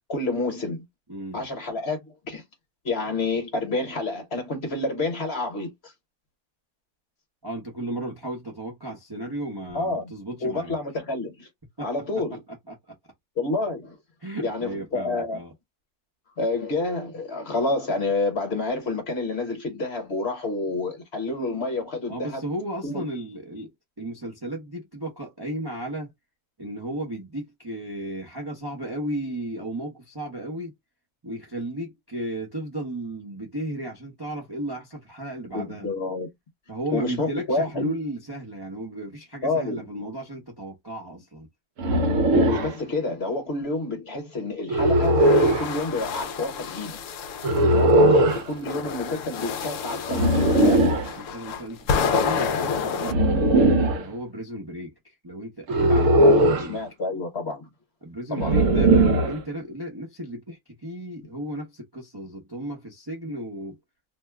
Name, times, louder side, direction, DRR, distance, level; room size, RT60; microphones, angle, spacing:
voice 1, 0.1-0.9 1.3-2.4 2.8-5.9 9.7-10.1 10.4-11.5 11.8-12.4 13.4-14.0 14.4-15.4 16.4-22.4 22.8-23.0 35.5-36.3 36.9-37.9 39.4-39.9 42.3-45.2 45.6-47.0 47.6-51.0 56.2-57.7 58.3-58.5, left 2 dB, 45° left, 1.1 m, -29 dB
voice 2, 1.1-1.5 7.4-10.7 11.8-11.9 12.7-12.8 14.2-15.5 22.1-23.7 24.0-26.1 26.6-30.7 31.2-35.9 36.7-41.5 47.7-48.3 51.2-56.8 58.0-63.8, right 1 dB, 25° right, 0.5 m, -34 dB
sound 1, 41.8-42.7 44.7-45.7 47.4-48.4 50.1-51.1 53.0-54.0 55.7-56.7 58.4-59.4, right 1 dB, 65° right, 0.9 m, -19 dB
sound 2, 45.0-47.6 48.3-53.1, left 5 dB, 70° left, 0.8 m, -29 dB
2.7 x 2.2 x 3.4 m
omnidirectional pair, 1.7 m